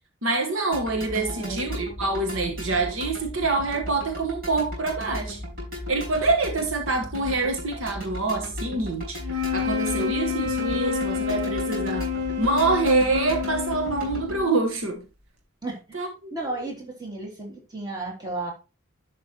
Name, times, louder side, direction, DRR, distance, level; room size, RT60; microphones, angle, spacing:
voice 1, 0.2-5.4 5.9-12.1 12.4-15.0 15.9-16.3, right 3 dB, 65° right, 1.3 m, -26 dB
sound 1, 0.7-14.4, equal, 45° right, 5.0 m, -36 dB
voice 2, 1.1-1.7 15.6-16.0 16.3-18.5, right 2 dB, 20° right, 2.8 m, -34 dB
sound 2, 9.2-14.7, left 6 dB, 90° right, 1.7 m, -28 dB
11.0 x 5.8 x 3.0 m
head